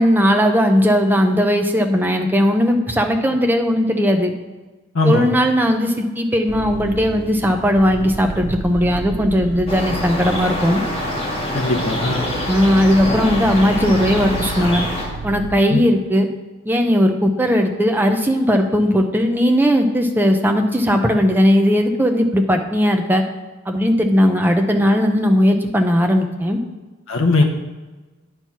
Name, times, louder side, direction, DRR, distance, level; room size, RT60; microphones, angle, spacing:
voice 1, 0.0-4.3 5.0-10.8 12.5-14.8 15.2-16.3 16.7-23.2 23.7-26.6, equal, 10° right, 4 dB, 0.6 m, -17 dB
voice 2, 4.9-5.3 11.5-12.3 15.7-15.8 27.1-27.4, left 2 dB, 70° left, 1 dB, 0.9 m, -18 dB
sound 1, 6.5-15.5, right 4 dB, 55° right, 0.4 m, -31 dB
sound 2, 9.7-15.1, left 1 dB, 30° left, 2.0 m, -25 dB
9.5 x 4.6 x 5.7 m, 1.2 s
head